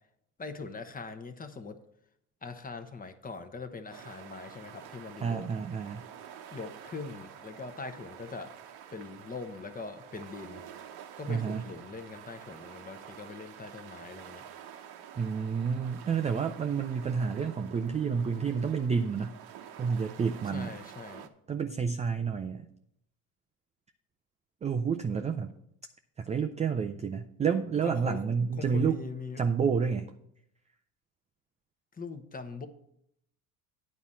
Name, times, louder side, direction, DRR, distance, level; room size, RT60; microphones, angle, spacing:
voice 1, 0.4-1.8 2.4-5.5 6.5-8.5 8.9-10.6 11.2-14.4 20.5-21.3 27.8-28.2 28.6-29.4 32.0-32.7, left 4 dB, 20° left, 7 dB, 0.9 m, -41 dB
sound 1, 3.9-21.3, right 9 dB, 55° right, 0.9 m, -49 dB
voice 2, 5.2-6.0 11.3-11.7 15.2-19.3 19.8-20.7 21.5-22.6 24.6-25.5 26.2-29.0 29.4-30.1, right 6 dB, 15° right, 6 dB, 0.3 m, -29 dB
9.4 x 4.2 x 7.3 m, 0.76 s
hypercardioid pair, 80°, 45 cm